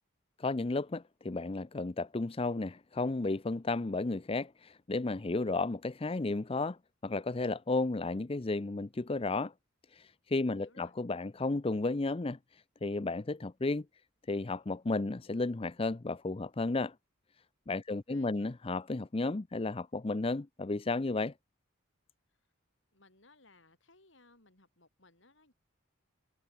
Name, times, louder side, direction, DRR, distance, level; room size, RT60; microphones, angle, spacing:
voice 1, 0.4-9.5 9.9-13.8 14.3-16.9 17.7-21.3, left 3 dB, 30° left, 0.5 m, -33 dB
voice 2, 10.5-11.0 17.9-18.6 22.9-25.5, left 2 dB, 65° left, 5.8 m, -62 dB
head